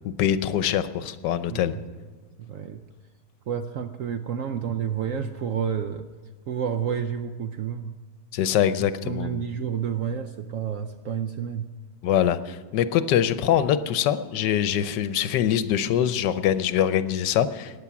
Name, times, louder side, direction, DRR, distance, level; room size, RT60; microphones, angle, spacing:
voice 1, 0.2-1.7 8.3-9.4 12.0-17.8, left 10 dB, 75° left, 13 dB, 1.3 m, -23 dB
voice 2, 1.5-1.8 2.4-2.8 3.5-6.1 6.5-7.9 9.0-11.7, right 8 dB, 65° right, 8 dB, 0.8 m, -30 dB
15.5 x 9.8 x 5.9 m, 1.4 s
omnidirectional pair, 1.9 m